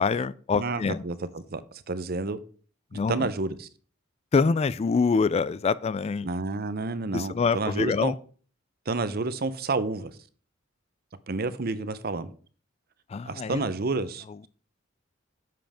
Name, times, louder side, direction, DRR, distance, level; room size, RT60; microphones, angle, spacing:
voice 1, 0.0-1.0 2.9-3.3 4.3-6.3 7.1-8.1 13.1-13.6, left 4 dB, 30° left, 0.3 m, -25 dB
voice 2, 0.6-1.6 1.9-2.4 2.9-3.7 6.2-8.1 8.9-10.1 11.3-12.3 13.3-14.5, right 3 dB, 50° right, 0.7 m, -30 dB
10.0 x 7.7 x 3.5 m
head